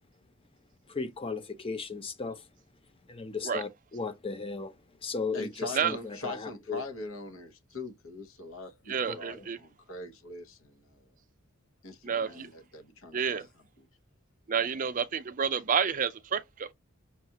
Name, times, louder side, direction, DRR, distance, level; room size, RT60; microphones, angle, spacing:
voice 1, 0.9-2.4 3.1-4.7 5.0-6.8 9.1-9.5, left 4 dB, 25° left, 0.6 m, -36 dB
voice 2, 5.3-11.1 11.8-13.4, left 2 dB, 75° left, 1.1 m, -42 dB
voice 3, 8.9-9.6 12.0-12.5 13.1-13.4 14.5-16.7, right 7 dB, 40° right, 0.4 m, -29 dB
5.8 x 2.4 x 2.8 m
head